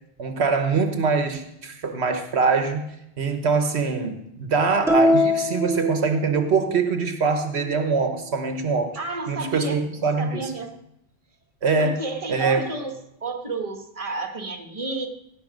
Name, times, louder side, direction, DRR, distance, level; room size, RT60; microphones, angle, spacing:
voice 1, 0.2-9.0 9.3-10.5 11.6-12.0 12.3-12.6, right 4 dB, 75° right, 6 dB, 1.2 m, -23 dB
sound 1, 4.9-6.7, left 1 dB, 5° right, 1.6 m, -22 dB
voice 2, 8.9-9.8 10.2-10.7 11.8-12.9 13.2-15.1, right 3 dB, 35° right, 4 dB, 1.4 m, -30 dB
17.0 x 6.9 x 5.1 m, 0.81 s
omnidirectional pair, 1.1 m